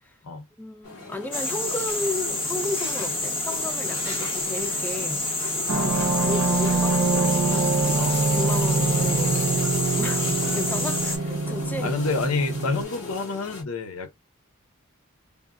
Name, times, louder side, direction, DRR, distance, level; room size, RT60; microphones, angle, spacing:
voice 1, 0.6-5.2 5.7-8.0 8.3-9.4 10.0-11.9, left 2 dB, 10° left, 0.4 m, -33 dB
sound 1, 0.8-13.6, left 3 dB, 50° left, 2.0 m, -38 dB
sound 2, 1.3-11.2, left 2 dB, 25° left, 1.1 m, -28 dB
sound 3, 5.7-12.8, right 3 dB, 65° right, 0.6 m, -24 dB
voice 2, 11.8-14.1, left 3 dB, 85° left, 0.7 m, -28 dB
3.4 x 2.1 x 2.3 m
head